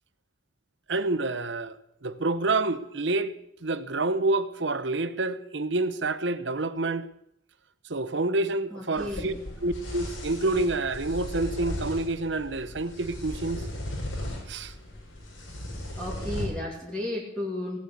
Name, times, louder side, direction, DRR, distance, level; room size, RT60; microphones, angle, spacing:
voice 1, 0.9-1.8 2.0-3.4 3.6-7.1 7.9-9.3 9.6-13.6 14.5-14.7, right 2 dB, 60° right, 1.0 m, -28 dB
voice 2, 8.7-9.4 16.0-17.8, left 1 dB, 5° left, 2.8 m, -33 dB
sound 1, 9.0-16.4, left 1 dB, 85° left, 5.4 m, -37 dB
17.5 x 9.3 x 8.4 m
head